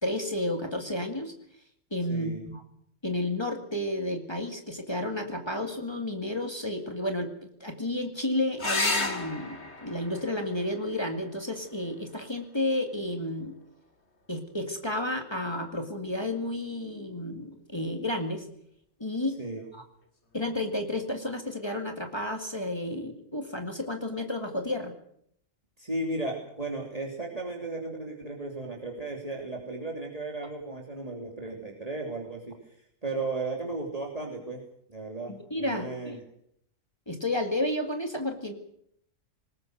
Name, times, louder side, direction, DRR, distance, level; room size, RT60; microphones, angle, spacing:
voice 1, 0.0-1.3 1.9-2.6 3.0-13.6 14.3-18.5 19.0-19.4 19.7-19.8 20.3-24.9 35.3-36.2 37.1-38.5, left 1 dB, 20° left, 5 dB, 2.1 m, -31 dB
voice 2, 2.1-2.5 19.4-19.6 25.8-32.5 33.0-34.6 34.9-36.2, right 2 dB, 30° right, -1 dB, 3.2 m, -35 dB
sound 1, 8.6-13.6 15.5-16.1 19.6-19.7 20.0-20.1, left 2 dB, 60° left, 3.0 m, -35 dB
20.0 x 19.5 x 7.9 m, 0.70 s
omnidirectional pair, 1.3 m